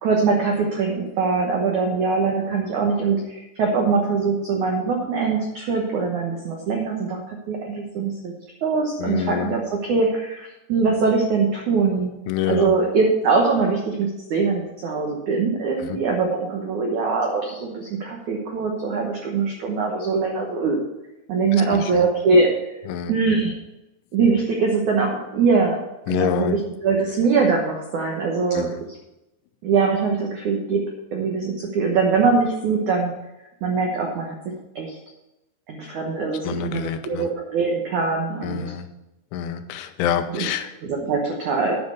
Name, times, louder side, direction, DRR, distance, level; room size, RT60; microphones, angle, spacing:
voice 1, 0.0-8.3 8.6-12.1 12.5-20.8 21.3-22.5 23.1-23.5 24.1-25.8 26.1-28.7 29.6-30.8 31.1-33.1 33.6-34.4 34.7-35.0 35.7-38.6 40.3-41.8, right 4 dB, 85° right, 0 dB, 1.7 m, -22 dB
voice 2, 9.0-9.5 12.3-12.7 15.8-16.0 21.7-22.1 22.9-23.1 26.1-26.6 28.5-28.7 36.4-37.3 38.4-38.8 39.3-40.7, left 9 dB, 90° left, 8 dB, 3.1 m, -26 dB
9.8 x 5.5 x 6.5 m, 0.93 s
omnidirectional pair, 5.4 m